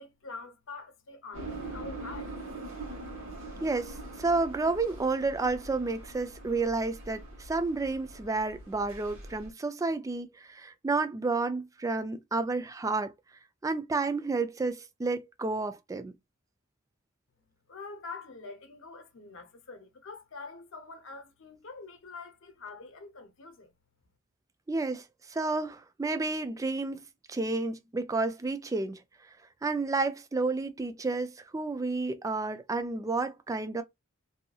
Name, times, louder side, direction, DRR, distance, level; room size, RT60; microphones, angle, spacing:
voice 1, 0.0-2.3 17.7-23.7, left 4 dB, 65° left, 0.7 m, -45 dB
sound 1, 1.3-9.5, right 2 dB, 70° right, 1.1 m, -43 dB
voice 2, 3.6-13.1 13.6-16.1 24.7-25.0 25.3-27.0 27.3-29.0 29.6-33.8, right 3 dB, 15° right, 0.3 m, -31 dB
2.7 x 2.6 x 2.3 m
head